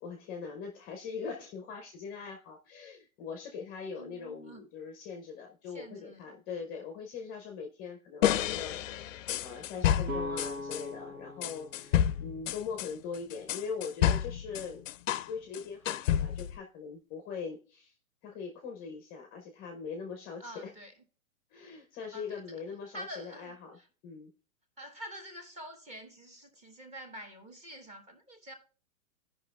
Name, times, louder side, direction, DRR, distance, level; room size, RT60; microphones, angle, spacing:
voice 1, 0.0-14.8 15.1-17.9 18.2-20.7 21.5-23.8 24.0-24.3, left 5 dB, 20° left, 0.7 m, -41 dB
voice 2, 4.0-4.6 5.7-6.3 20.4-20.9 22.1-22.4 22.9-23.9 24.8-28.5, equal, 15° right, 1.3 m, -47 dB
sound 1, 8.2-10.8 11.4-15.3 15.5-16.6, left 10 dB, 65° left, 0.5 m, -30 dB
sound 2, 10.1-13.9, left 1 dB, 75° right, 1.9 m, -42 dB
16.0 x 5.4 x 2.3 m
hypercardioid pair, 130°, 42 cm